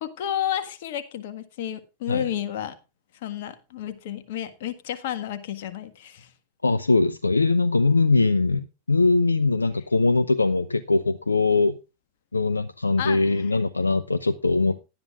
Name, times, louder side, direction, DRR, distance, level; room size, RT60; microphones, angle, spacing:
voice 1, 0.0-2.7 3.2-6.3 13.0-13.2, left 10 dB, 55° left, 1.6 m, -31 dB
voice 2, 6.6-11.8 12.3-14.8, left 3 dB, 80° left, 0.5 m, -21 dB
17.5 x 11.5 x 2.4 m
figure-of-eight pair, 90°, 0 cm